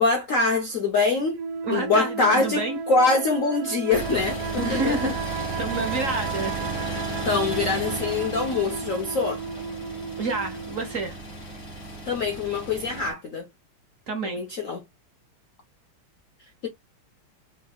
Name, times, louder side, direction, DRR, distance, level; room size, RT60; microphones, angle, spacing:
voice 1, 0.0-1.4 1.7-5.1 7.2-9.4 12.1-13.5 14.2-14.8, left 3 dB, 65° left, 0.8 m, -24 dB
sound 1, 1.3-11.0, right 5 dB, 75° right, 1.4 m, -34 dB
voice 2, 1.6-2.8 4.6-5.1 5.6-6.6 10.2-11.2 14.1-14.4, right 2 dB, 50° right, 1.0 m, -28 dB
sound 2, 3.9-13.1, right 2 dB, 25° left, 2.0 m, -34 dB
4.0 x 3.8 x 2.3 m
omnidirectional pair, 2.3 m